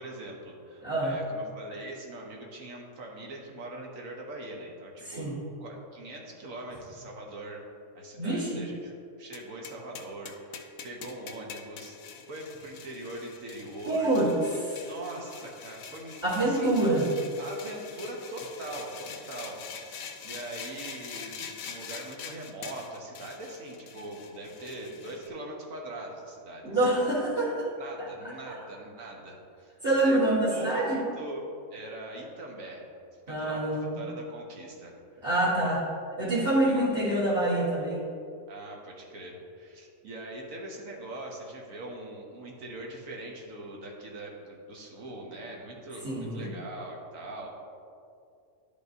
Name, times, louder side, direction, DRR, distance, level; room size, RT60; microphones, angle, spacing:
voice 1, 0.0-5.3 5.6-7.6 7.9-8.9 9.2-12.0 12.3-14.1 14.9-16.8 17.4-26.8 27.8-31.4 31.7-32.9 33.3-35.2 36.6-36.8 38.5-47.5, right 1 dB, 70° right, -1 dB, 1.4 m, -42 dB
voice 2, 0.8-1.2 5.0-5.4 8.2-8.6 13.8-14.3 14.6-14.8 16.2-17.1 26.6-27.7 28.0-28.1 28.5-28.6 29.8-31.0 33.3-34.0 35.2-35.9 36.2-38.0 46.0-46.5, right 1 dB, 40° right, -11 dB, 2.1 m, -26 dB
sound 1, 9.3-25.3, left 7 dB, 75° left, 1.0 m, -44 dB
11.5 x 5.2 x 2.6 m, 2.4 s
omnidirectional pair, 1.5 m